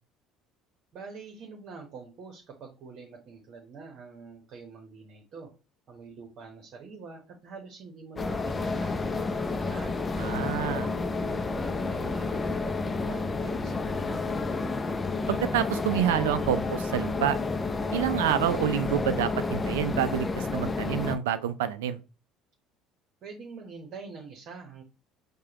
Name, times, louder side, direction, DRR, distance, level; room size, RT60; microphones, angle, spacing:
voice 1, 0.9-5.5 5.9-9.9 10.3-14.4 23.2-24.8, right 4 dB, 55° right, 0.9 m, -45 dB
sound 1, 8.2-21.2, left 3 dB, 30° left, 0.5 m, -30 dB
voice 2, 10.2-10.9 15.3-17.4 17.9-22.0, right 10 dB, 85° right, 0.3 m, -28 dB
4.8 x 2.2 x 2.9 m
hypercardioid pair, 70°, 0 cm